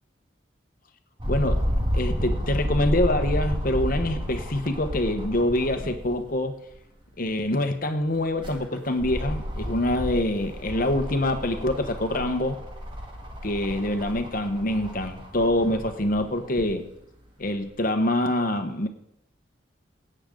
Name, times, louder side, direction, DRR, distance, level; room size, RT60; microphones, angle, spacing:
sound 1, 1.2-6.2 6.7-6.8 8.1-16.7 17.4-17.5, equal, 25° right, 1.8 m, -31 dB
voice 1, 1.3-1.6 1.9-6.6 7.2-12.6 13.4-16.8 17.4-18.9, left 1 dB, 50° left, 6 dB, 1.2 m, -25 dB
16.5 x 8.9 x 3.9 m, 0.74 s
head